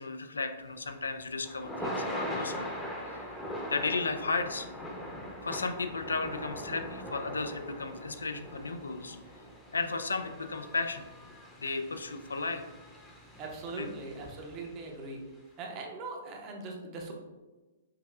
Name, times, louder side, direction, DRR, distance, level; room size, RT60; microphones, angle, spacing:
voice 1, 0.0-2.7 3.7-4.7 5.4-9.2 9.7-11.0 11.6-12.6 13.8-13.9, left 3 dB, 80° left, 7 dB, 0.3 m, -34 dB
Thunder / Rain, 0.7-14.9, equal, 10° left, 0.8 m, -41 dB
voice 2, 13.4-15.2 15.6-17.1, right 3 dB, 35° right, 1 dB, 0.7 m, -40 dB
5.6 x 2.3 x 2.4 m, 1.2 s
hypercardioid pair, 120°, 0 cm